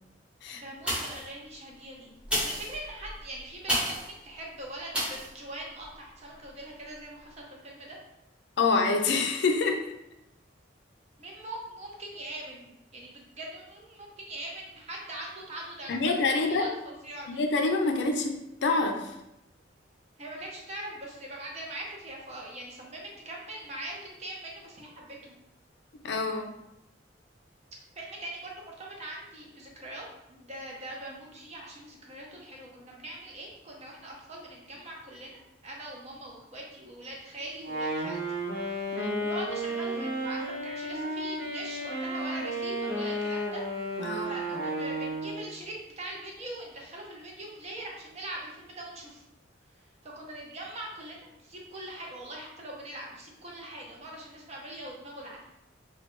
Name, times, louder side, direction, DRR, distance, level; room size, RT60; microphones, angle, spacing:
voice 1, 0.5-2.1 2.4-8.0 11.2-16.1 16.4-17.4 20.2-25.4 27.9-38.2 38.7-43.6 43.9-49.2 50.0-55.5, right 1 dB, 35° right, -2 dB, 0.7 m, -42 dB
sound 1, 0.8-1.3 2.2-4.1 4.9-5.3 5.8-5.9, equal, 5° right, 0.9 m, -31 dB
voice 2, 8.6-9.8 15.9-16.7 17.3-19.1 26.0-26.5 38.9-39.2 44.0-44.3, left 3 dB, 65° left, 4 dB, 0.4 m, -27 dB
Wind instrument woodwind instrument, 37.6-45.5, right 1 dB, 80° right, 0.9 m, -33 dB
3.1 x 2.2 x 3.0 m, 0.87 s
head